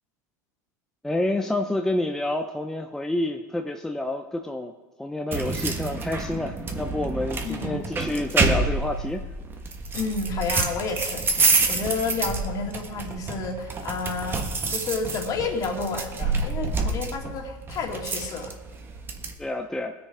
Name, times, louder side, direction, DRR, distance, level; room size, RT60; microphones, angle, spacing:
voice 1, 1.0-4.7 5.0-9.2 19.4-19.9, left 1 dB, 5° left, 4 dB, 0.6 m, -28 dB
sound 1, 5.3-19.3, right 3 dB, 25° right, 1.4 m, -28 dB
voice 2, 7.4-7.8 9.9-18.5, left 4 dB, 40° left, 2 dB, 2.3 m, -31 dB
19.5 x 6.7 x 4.9 m, 1.3 s
supercardioid pair, 120°, 9 cm